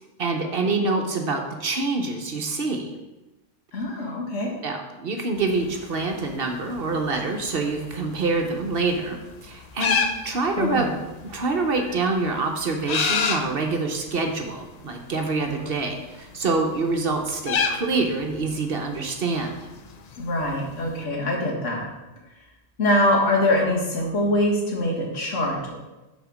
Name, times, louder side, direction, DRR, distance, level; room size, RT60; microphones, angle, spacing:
voice 1, 0.2-2.9 4.6-10.9 11.2-19.7, right 3 dB, 55° right, 3 dB, 1.0 m, -26 dB
voice 2, 3.7-4.5 10.6-10.9 20.2-21.9 22.8-25.8, left 1 dB, 75° left, -2 dB, 2.1 m, -23 dB
sound 1, 5.4-21.0, left 5 dB, 55° left, 0.4 m, -32 dB
6.6 x 4.2 x 6.2 m, 1.1 s
omnidirectional pair, 1.3 m